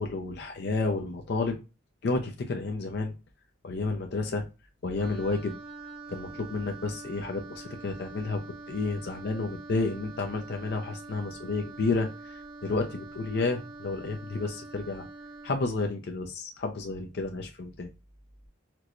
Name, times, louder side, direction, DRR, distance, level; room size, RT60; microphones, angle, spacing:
voice 1, 0.0-1.6 2.0-3.1 3.6-4.4 4.8-5.5 6.1-8.4 8.7-15.1 15.4-17.9, left 3 dB, 55° left, 3 dB, 0.4 m, -31 dB
Wind instrument woodwind instrument, 5.0-15.6, right 3 dB, 60° right, 1.0 m, -45 dB
4.4 x 2.1 x 2.4 m, 0.30 s
head